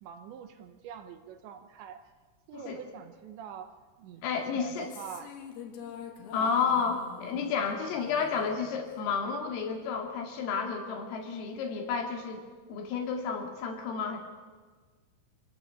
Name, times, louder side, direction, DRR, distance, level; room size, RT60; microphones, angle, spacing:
voice 1, 0.0-2.0 2.5-5.3 6.3-6.5, right 8 dB, 75° right, 7 dB, 3.0 m, -45 dB
voice 2, 4.2-4.9 6.3-12.4 12.7-14.2, left 6 dB, 85° left, 2 dB, 5.1 m, -31 dB
sound 1, 4.6-9.1, left 8 dB, 60° left, 2.9 m, -46 dB
25.5 x 15.5 x 8.3 m, 1.4 s
omnidirectional pair, 5.8 m